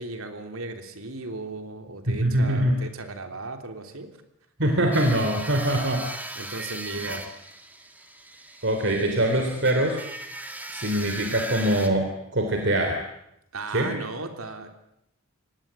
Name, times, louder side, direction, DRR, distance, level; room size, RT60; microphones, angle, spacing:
voice 1, 0.0-4.2 6.3-7.2 13.5-14.7, right 3 dB, 85° right, 6 dB, 3.2 m, -36 dB
voice 2, 2.1-2.8 4.6-6.1 7.1-7.2 8.6-10.0 10.7-13.0 13.7-14.0, right 1 dB, 60° right, 4 dB, 3.4 m, -23 dB
sound 1, 4.9-11.9, right 1 dB, 10° right, 2.3 m, -38 dB
25.0 x 19.0 x 8.9 m, 0.79 s
head